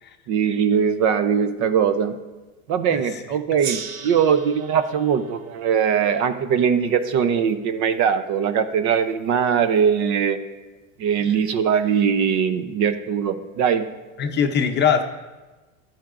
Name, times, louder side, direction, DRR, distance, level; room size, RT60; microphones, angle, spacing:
voice 1, 0.3-2.1 2.7-10.4 11.0-13.9, right 7 dB, 45° right, 10 dB, 0.8 m, -21 dB
Gong, 3.6-6.7, right 7 dB, 90° right, 1.0 m, -37 dB
voice 2, 14.2-15.0, left 7 dB, 25° left, 5 dB, 0.7 m, -21 dB
13.5 x 10.5 x 2.5 m, 1.2 s
supercardioid pair, 120°, 41 cm